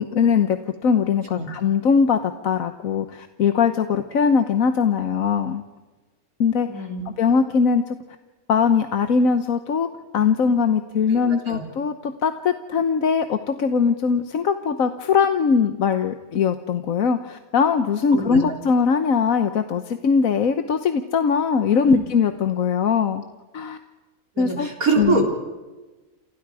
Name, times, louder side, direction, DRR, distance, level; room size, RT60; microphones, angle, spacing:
voice 1, 0.0-5.6 6.4-6.9 7.2-8.0 8.5-9.9 10.1-23.2 23.5-23.8 24.4-24.7 25.0-25.2, left 6 dB, 75° left, 8 dB, 1.4 m, -21 dB
voice 2, 6.6-7.0 11.1-11.6 18.1-18.6 21.9-22.0 24.4-25.3, right 3 dB, 80° right, 1 dB, 4.2 m, -25 dB
29.0 x 28.5 x 4.9 m, 1.2 s
omnidirectional pair, 1.5 m